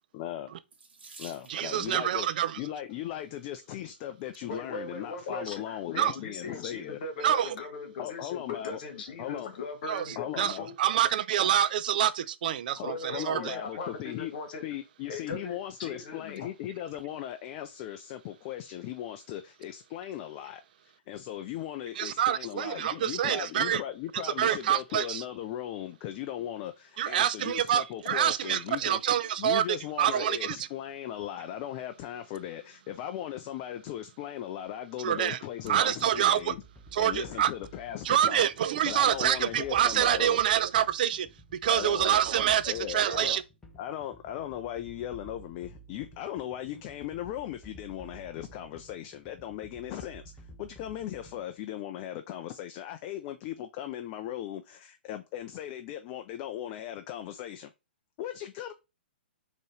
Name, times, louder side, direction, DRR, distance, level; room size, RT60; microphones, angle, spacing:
voice 1, 0.1-0.5 1.2-2.3 2.6-7.0 8.0-8.8 9.2-9.5 10.2-10.7 12.8-14.3 14.6-29.0 29.4-36.6 37.0-38.5 38.8-40.4 41.7-42.2 42.6-43.4 43.8-57.7 58.2-58.7, left 12 dB, 35° left, 0.4 m, -38 dB
Water tap faucet / Sink (filling or washing), 0.7-1.9 3.0-3.4 4.1-4.2 4.5-4.6, right 3 dB, 70° right, 1.3 m, -50 dB
voice 2, 1.5-2.6 6.0-6.1 7.2-7.5 9.9-10.0 10.4-13.4 22.0-23.8 24.2-25.2 27.0-29.6 30.0-30.7 35.0-35.4 35.7-36.5 36.9-37.5 38.0-41.3 41.6-43.4, right 10 dB, 50° right, 0.4 m, -26 dB
voice 3, 4.5-10.7 12.8-14.7 15.1-16.5, left 3 dB, 50° left, 1.4 m, -39 dB
sound 1, 35.6-51.6, right 2 dB, 10° left, 0.9 m, -52 dB
4.3 x 3.0 x 3.2 m
figure-of-eight pair, 120°, 6 cm